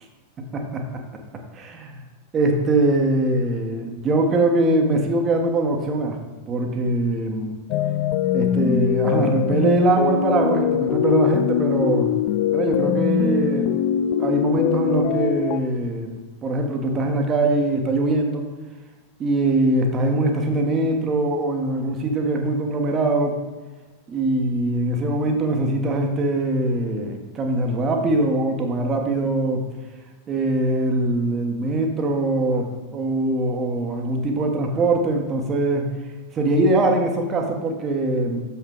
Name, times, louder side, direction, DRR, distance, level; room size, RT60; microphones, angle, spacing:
voice 1, 0.4-0.9 1.5-2.0 2.3-6.2 6.5-7.6 8.3-12.1 12.5-13.7 14.2-16.1 16.4-18.5 19.2-23.3 24.1-29.6 30.3-35.9 36.3-38.4, right 2 dB, 25° right, 3 dB, 1.3 m, -22 dB
sound 1, 7.7-15.6, left 10 dB, 45° left, 0.4 m, -22 dB
8.4 x 7.1 x 3.8 m, 1.3 s
figure-of-eight pair, 90°, 0 cm